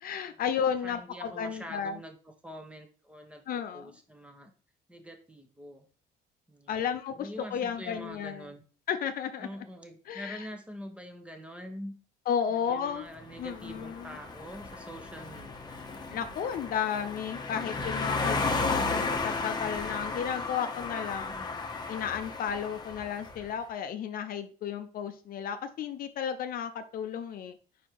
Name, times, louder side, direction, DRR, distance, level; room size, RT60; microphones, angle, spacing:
voice 1, 0.0-2.0 3.5-3.9 6.7-8.5 8.9-9.5 10.1-10.5 12.3-13.1 13.4-14.2 16.1-21.3 21.9-27.6, left 8 dB, 60° left, 9 dB, 0.6 m, -33 dB
voice 2, 0.8-4.5 4.9-5.8 6.5-6.8 7.1-8.6 9.4-11.9 12.5-15.9 21.2-21.6, equal, 5° right, 5 dB, 1.2 m, -45 dB
sound 1, 13.2-23.5, left 3 dB, 25° left, 1.1 m, -34 dB
5.0 x 4.5 x 4.6 m, 0.40 s
cardioid pair, 110°, 17 cm